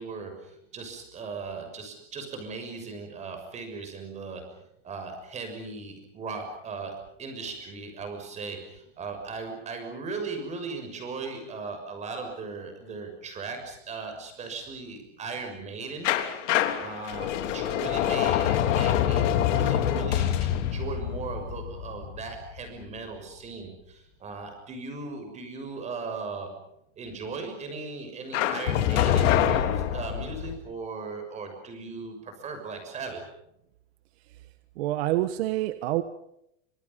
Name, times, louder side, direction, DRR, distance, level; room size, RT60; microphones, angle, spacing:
voice 1, 0.0-4.4 4.8-16.1 16.8-26.5 27.0-33.2, right 4 dB, 20° right, 5 dB, 6.4 m, -38 dB
sound 1, 16.0-22.8 28.3-30.6, left 11 dB, 85° left, 3.5 m, -25 dB
voice 2, 34.8-36.0, right 15 dB, 60° right, 10 dB, 1.5 m, -27 dB
30.0 x 27.0 x 5.6 m, 0.79 s
supercardioid pair, 175°, 36 cm